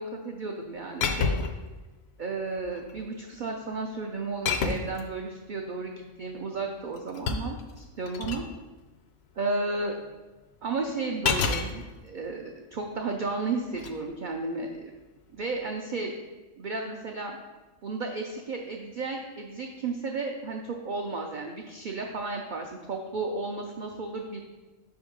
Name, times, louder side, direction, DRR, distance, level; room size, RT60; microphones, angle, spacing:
voice 1, 0.0-1.4 2.2-8.4 9.4-10.0 10.6-14.9 15.3-16.1 16.6-17.3 17.8-24.4, right 3 dB, 85° right, 2 dB, 0.4 m, -33 dB
sound 1, 1.0-1.7 2.6-3.0 4.5-5.0 6.7-8.5 11.2-11.7 13.7-13.9, left 5 dB, 65° left, 0.7 m, -28 dB
5.2 x 3.6 x 4.9 m, 1.2 s
omnidirectional pair, 1.4 m